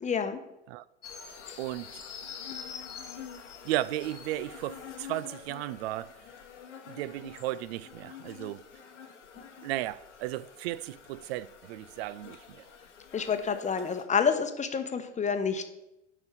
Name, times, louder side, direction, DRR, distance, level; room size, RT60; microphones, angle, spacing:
voice 1, 0.0-0.4 1.5-1.6 13.1-15.7, left 6 dB, 20° left, 0.9 m, -28 dB
sound 1, 1.0-14.0, left 7 dB, 80° left, 1.2 m, -46 dB
voice 2, 1.6-2.0 3.6-6.1 6.9-8.6 9.6-12.7, right 15 dB, 60° right, 0.4 m, -35 dB
7.8 x 5.0 x 5.7 m
figure-of-eight pair, 75°, 35 cm